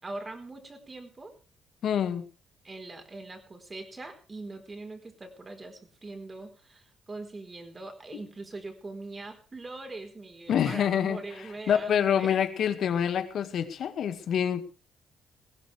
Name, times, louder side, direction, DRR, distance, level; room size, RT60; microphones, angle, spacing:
voice 1, 0.0-1.3 2.6-12.4, right 2 dB, 30° right, 7 dB, 4.4 m, -42 dB
voice 2, 1.8-2.2 10.5-11.2 11.7-14.6, left 8 dB, 65° left, 10 dB, 1.9 m, -26 dB
20.0 x 16.0 x 3.4 m, 0.33 s
supercardioid pair, 65°, 0 cm